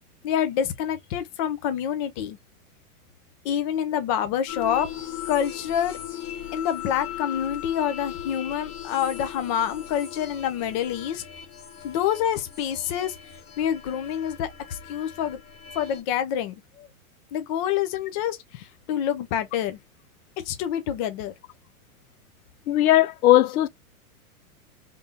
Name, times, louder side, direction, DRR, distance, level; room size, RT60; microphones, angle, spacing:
voice 1, 0.2-2.4 3.4-4.9 5.3-6.0 6.5-11.2 11.8-13.1 13.6-15.4 15.7-16.9 17.3-19.8 20.4-21.3, left 9 dB, 25° left, 0.4 m, -27 dB
sound 1, 4.5-16.0, left 10 dB, 55° left, 1.5 m, -38 dB
voice 2, 22.7-23.7, left 14 dB, 70° left, 0.7 m, -18 dB
3.5 x 2.6 x 2.7 m
hypercardioid pair, 135°, 44 cm